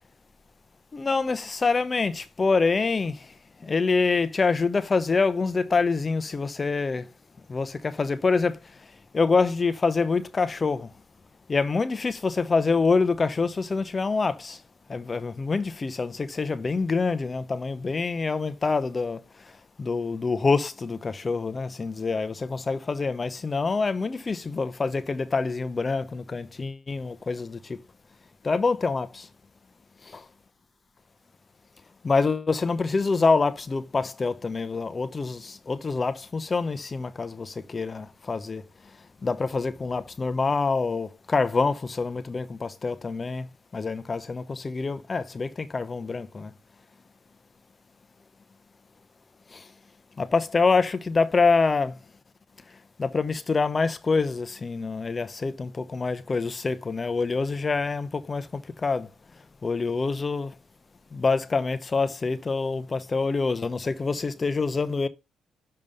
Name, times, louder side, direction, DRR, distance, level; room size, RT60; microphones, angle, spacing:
voice 1, 0.9-3.2 3.6-7.1 7.5-8.6 9.1-10.9 11.5-14.6 14.9-19.2 19.8-27.8 28.4-29.3 32.0-38.6 39.2-43.5 43.7-46.5 49.5-49.6 50.2-52.0 53.0-59.1 59.6-60.5 61.1-65.1, left 4 dB, 30° left, 0.7 m, -26 dB
6.7 x 5.3 x 5.2 m
cardioid pair, 90°, 0 cm